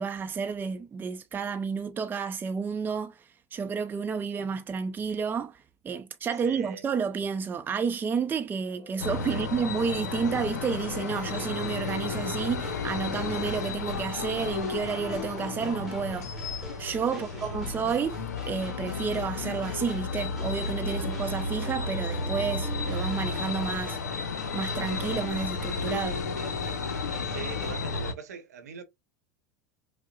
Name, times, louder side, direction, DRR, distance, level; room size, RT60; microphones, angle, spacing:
voice 1, 0.0-3.2 3.5-16.4 16.8-18.2 18.4-24.0 24.5-26.2, right 5 dB, 25° right, 0.5 m, -31 dB
voice 2, 6.4-6.9 9.3-9.5 17.1-17.6 26.9-28.8, right 7 dB, 75° right, 0.9 m, -42 dB
Brass instrument, 8.6-14.2, left 2 dB, 25° left, 2.1 m, -51 dB
sound 1, 9.0-28.1, left 4 dB, 80° left, 0.6 m, -33 dB
sound 2, 11.2-27.7, equal, 5° right, 1.2 m, -46 dB
5.3 x 2.0 x 2.3 m
hypercardioid pair, 85°, 9 cm